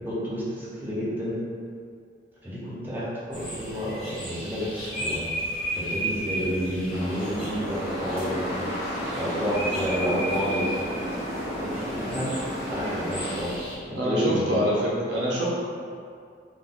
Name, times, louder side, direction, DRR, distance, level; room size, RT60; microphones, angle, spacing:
voice 1, 0.1-1.4 2.4-5.3 5.7-8.7 9.1-10.9 11.6-12.4 12.7-13.6 13.9-14.6, equal, 10° right, -9 dB, 0.7 m, -30 dB
sound 1, 3.3-13.8, right 1 dB, 5° left, 1.3 m, -35 dB
sound 2, 6.9-13.4, equal, 35° left, 1.1 m, -32 dB
voice 2, 14.0-15.5, equal, 75° right, -6 dB, 1.0 m, -25 dB
3.8 x 2.6 x 3.8 m, 2.3 s
head